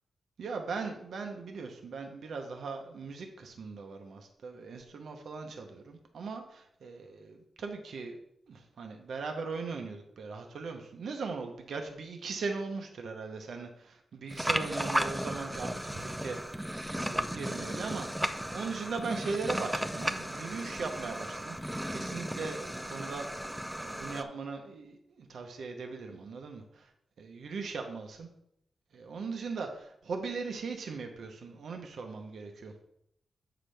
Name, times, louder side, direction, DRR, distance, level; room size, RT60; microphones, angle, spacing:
voice 1, 0.4-8.2 8.5-16.4 16.9-21.6 21.9-26.9 27.2-28.3 28.9-32.7, right 4 dB, 65° right, 4 dB, 0.8 m, -39 dB
sound 1, 14.3-24.2, equal, 5° right, 0.4 m, -35 dB
8.4 x 5.9 x 3.4 m, 0.75 s
wide cardioid pair, 170°, 0 cm